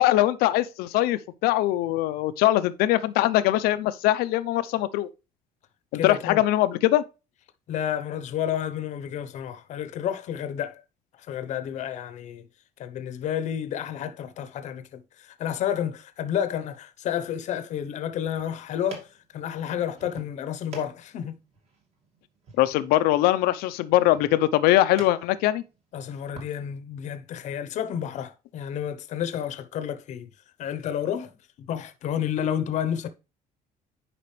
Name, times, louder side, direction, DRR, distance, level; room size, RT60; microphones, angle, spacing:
voice 1, 0.0-5.1 5.9-7.0 22.6-25.6, left 15 dB, 85° left, 0.7 m, -22 dB
voice 2, 5.9-6.4 7.7-10.8 11.3-12.4 12.8-19.1 19.3-21.3 25.9-30.3 30.6-31.3 31.6-33.1, left 9 dB, 50° left, 0.9 m, -30 dB
sound 1, 18.0-26.5, right 4 dB, 40° right, 2.3 m, -48 dB
10.0 x 5.1 x 3.3 m
cardioid pair, 160°, 15 cm